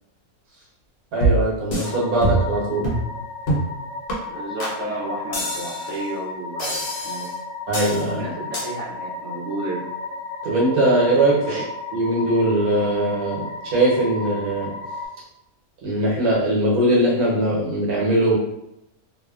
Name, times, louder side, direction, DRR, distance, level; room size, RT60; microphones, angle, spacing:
voice 1, 1.1-2.9 7.7-8.2 10.4-11.6 11.9-14.7 15.8-18.4, right 1 dB, 85° right, -5 dB, 1.4 m, -20 dB
sound 1, 1.2-1.9 2.2-2.6 2.8-3.1 3.5-3.7 4.1-4.2 4.6-4.8 5.3-6.0 6.6-7.3 7.7-8.0 8.5-8.6, right 2 dB, 55° left, 0.8 m, -24 dB
sound 2, 1.8-15.0, left 3 dB, 75° left, 1.0 m, -34 dB
voice 2, 4.3-7.3 8.1-9.9 11.4-11.7, right 1 dB, 65° right, -7 dB, 1.1 m, -32 dB
3.1 x 2.1 x 2.3 m, 0.82 s
omnidirectional pair, 1.5 m